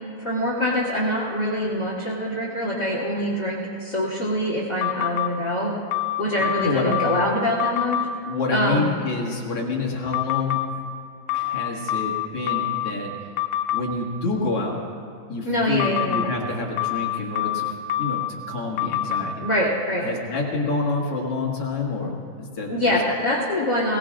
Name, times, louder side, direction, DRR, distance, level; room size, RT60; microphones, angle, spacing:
voice 1, 0.2-5.7 6.2-8.0 8.5-9.0 15.4-16.2 19.4-20.1 22.7-24.0, equal, 30° left, -4 dB, 2.6 m, -24 dB
sound 1, 4.8-5.3 5.9-7.3 7.6-8.1 10.1-10.7 11.3-12.9 13.4-13.8 15.8-16.3 16.8-18.3 18.8-19.2, left 14 dB, 90° left, 2.5 m, -25 dB
voice 2, 6.4-7.0 8.3-10.6 11.3-13.1 13.7-14.8 15.3-17.7 18.0-19.4 20.0-22.9, left 3 dB, 45° left, -3 dB, 2.2 m, -27 dB
22.5 x 20.0 x 2.5 m, 2.4 s
omnidirectional pair, 4.4 m